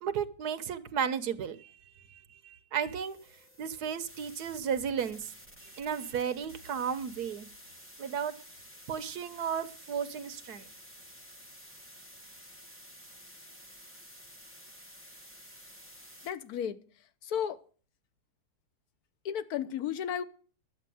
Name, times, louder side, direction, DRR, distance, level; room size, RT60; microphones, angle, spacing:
voice 1, 0.0-3.2 3.6-5.3 5.6-7.5 8.0-8.3 8.9-10.7, right 7 dB, 80° right, 12 dB, 1.5 m, -34 dB
sound 1, 3.0-16.5, equal, 10° left, 1.7 m, -52 dB
voice 2, 16.2-16.8 17.2-17.6 19.2-20.2, left 9 dB, 70° left, 12 dB, 1.3 m, -33 dB
12.0 x 8.9 x 7.6 m, 0.41 s
omnidirectional pair, 1.7 m